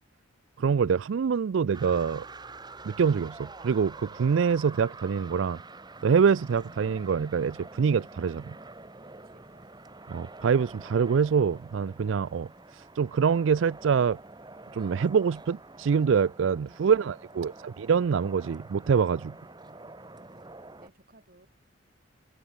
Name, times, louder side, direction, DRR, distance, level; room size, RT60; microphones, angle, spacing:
voice 1, 0.6-2.3 2.8-5.6 6.0-8.5 10.1-14.2 14.7-19.3, right 6 dB, 70° right, 0.4 m, -25 dB
sound 1, 1.7-20.9, right 3 dB, 20° right, 1.5 m, -47 dB
voice 2, 9.2-10.1 19.3-21.5, right 1 dB, 45° right, 3.9 m, -63 dB
head